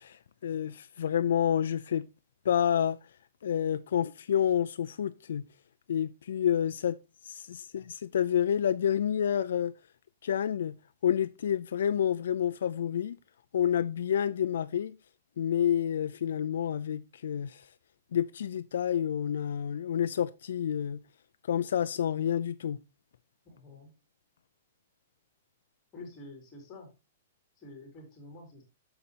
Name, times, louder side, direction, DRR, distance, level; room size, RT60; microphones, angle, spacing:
voice 1, 0.0-2.0 2.4-3.0 3.4-5.4 5.9-7.0 7.2-9.7 10.2-10.7 11.0-13.2 13.5-14.9 15.4-17.7 18.1-21.0 21.5-22.8, left 9 dB, 65° left, 0.5 m, -29 dB
voice 2, 23.4-23.9 25.9-26.9 27.6-28.6, left 2 dB, 15° left, 3.6 m, -48 dB
9.5 x 6.9 x 2.9 m
hypercardioid pair, 175°, 0 cm